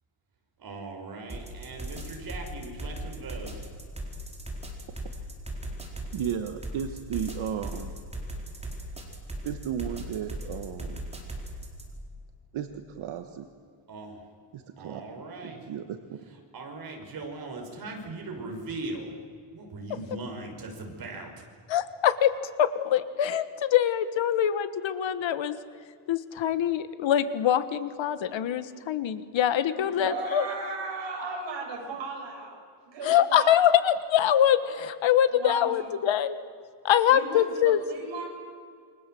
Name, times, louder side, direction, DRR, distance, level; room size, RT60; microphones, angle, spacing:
voice 1, 0.6-3.5 13.9-14.2 14.8-15.6 16.5-19.1 19.5-21.3, right 2 dB, 45° right, 2 dB, 5.8 m, -39 dB
sound 1, 1.3-12.0, equal, 15° right, 4.5 m, -38 dB
voice 2, 6.1-7.9 9.4-11.0 12.5-13.5 14.5-15.0 15.4-16.2, right 9 dB, 80° right, 7 dB, 1.6 m, -34 dB
voice 3, 21.7-22.3 22.6-25.6 26.1-30.4 33.0-36.4 36.8-37.8, left 10 dB, 70° left, 12 dB, 1.6 m, -24 dB
voice 4, 29.7-32.6 32.9-33.7 35.3-35.9 37.1-38.3, right 3 dB, 60° right, 0 dB, 7.6 m, -36 dB
28.5 x 24.5 x 7.9 m, 2.2 s
cardioid pair, 155°, 47 cm